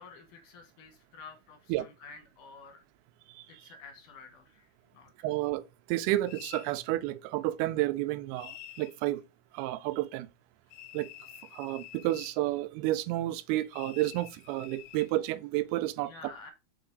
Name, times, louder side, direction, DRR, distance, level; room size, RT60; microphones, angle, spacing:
voice 1, 0.0-2.8 3.5-5.3 16.0-16.5, left 4 dB, 65° left, 2.3 m, -50 dB
voice 2, 5.2-9.2 9.5-10.3 10.9-11.1 11.5-16.1, right 16 dB, 85° right, 2.5 m, -31 dB
sound 1, 6.3-6.7 8.4-9.0 10.7-12.4 13.7-15.1, left 13 dB, 85° left, 2.5 m, -48 dB
5.8 x 4.1 x 3.9 m
omnidirectional pair, 4.6 m